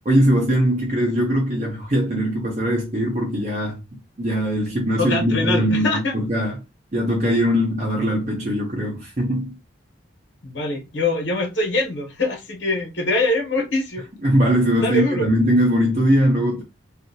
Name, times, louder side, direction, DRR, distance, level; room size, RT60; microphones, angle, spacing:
voice 1, 0.0-6.6 6.9-9.6 14.2-16.6, equal, 40° right, 0.6 m, -21 dB
voice 2, 5.0-6.1 10.4-14.0 14.8-15.3, left 2 dB, 75° left, 1.1 m, -23 dB
2.7 x 2.4 x 2.7 m
head